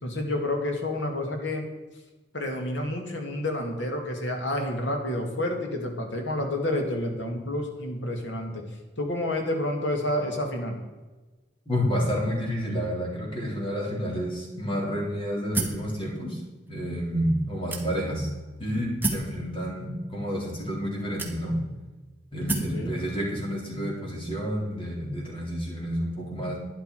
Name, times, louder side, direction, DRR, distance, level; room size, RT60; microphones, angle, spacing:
voice 1, 0.0-1.6 2.3-8.6 9.0-10.8 22.5-23.0, left 1 dB, 85° left, 3 dB, 2.4 m, -29 dB
voice 2, 11.7-16.4 16.7-18.3 18.6-21.6 22.3-26.6, equal, 30° left, -3 dB, 3.9 m, -29 dB
sound 1, 15.5-15.9 16.7-16.8 17.7-18.2 19.0-19.3 20.3-20.4 21.2-21.7 22.5-22.8, right 2 dB, 10° right, 1.4 m, -30 dB
12.0 x 10.0 x 4.9 m, 1.2 s
head